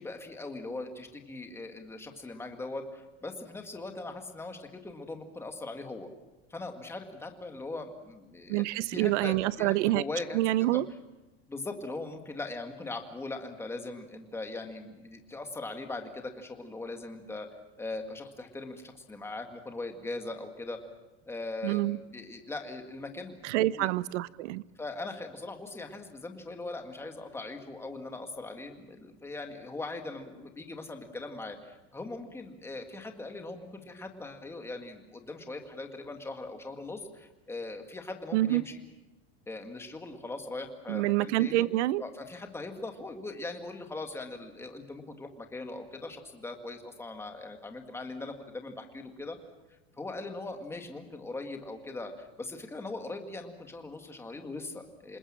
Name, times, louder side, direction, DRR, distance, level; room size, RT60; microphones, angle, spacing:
voice 1, 0.0-6.1 6.5-10.8 11.5-17.5 17.8-20.8 21.3-23.9 24.8-38.8 39.5-41.6 42.0-49.4 50.0-55.2, left 2 dB, 5° left, 2.0 m, -40 dB
voice 2, 8.5-10.0 10.3-10.9 21.6-22.0 23.4-24.6 38.3-38.7 40.9-42.0, right 16 dB, 80° right, 0.9 m, -27 dB
27.5 x 20.0 x 7.4 m
supercardioid pair, 165°, 34 cm